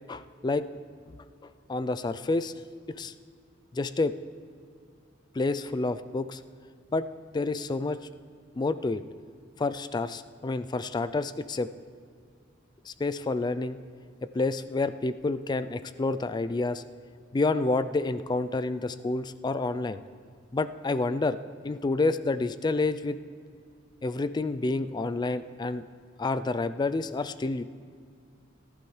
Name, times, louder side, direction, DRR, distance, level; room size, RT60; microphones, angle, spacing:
voice 1, 0.1-0.7 1.7-2.5 2.9-3.1 3.7-4.1 5.4-6.4 6.9-7.1 7.3-8.0 8.6-9.0 9.6-11.7 12.9-13.8 14.3-16.8 17.3-20.0 20.5-21.4 21.6-23.2 24.0-25.9 26.2-27.6, left 3 dB, 20° left, 13 dB, 0.3 m, -29 dB
18.0 x 11.5 x 3.2 m, 2.2 s
head